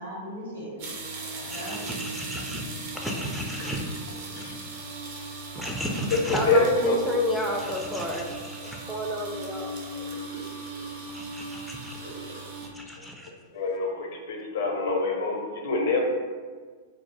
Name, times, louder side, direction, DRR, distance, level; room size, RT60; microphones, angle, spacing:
voice 1, 0.0-1.9 2.5-2.6 3.6-3.7 4.3-4.5 5.1-5.3 10.0-11.0 12.0-12.4, equal, 70° right, -7 dB, 1.2 m, -41 dB
sound 1, 0.8-12.7, right 2 dB, 50° right, 0.5 m, -38 dB
voice 2, 1.5-3.8 4.3-4.6 5.5-10.1 11.1-12.0 12.7-13.3, left 1 dB, ahead, -2 dB, 0.3 m, -31 dB
voice 3, 6.2-7.0 13.5-16.0, left 3 dB, 60° left, 1 dB, 0.5 m, -26 dB
2.5 x 2.0 x 3.0 m, 1.5 s
figure-of-eight pair, 105°, 0 cm